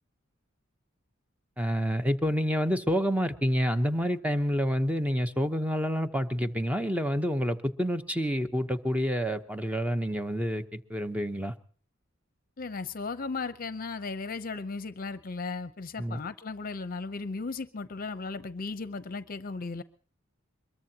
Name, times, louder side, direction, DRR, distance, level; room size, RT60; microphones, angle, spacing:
voice 1, 1.6-11.5 16.0-16.2, equal, 5° right, 0.9 m, -28 dB
voice 2, 12.6-19.8, left 4 dB, 45° left, 0.7 m, -36 dB
23.0 x 22.0 x 2.9 m
head